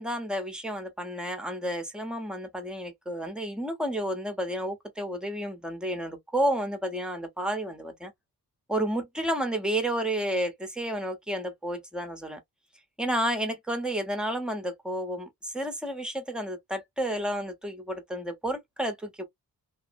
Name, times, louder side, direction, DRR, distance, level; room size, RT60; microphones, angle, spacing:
voice 1, 0.0-8.1 8.7-12.4 13.0-19.3, right 1 dB, ahead, 0.7 m, -31 dB
3.0 x 2.1 x 2.5 m
wide cardioid pair, 135°, 37 cm